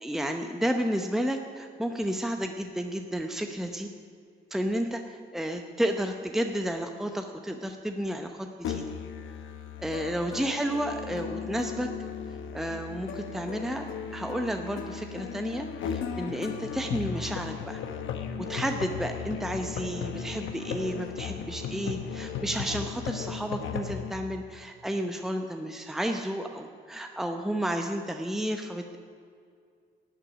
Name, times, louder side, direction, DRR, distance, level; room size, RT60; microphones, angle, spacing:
voice 1, 0.0-3.9 4.5-5.0 5.3-8.9 9.8-11.9 12.5-17.8 18.4-29.0, equal, ahead, 5 dB, 0.8 m, -32 dB
Musical instrument, 8.6-24.1, left 7 dB, 80° left, 1.2 m, -36 dB
11.5 x 8.2 x 10.0 m, 2.3 s
cardioid pair, 90°, 20 cm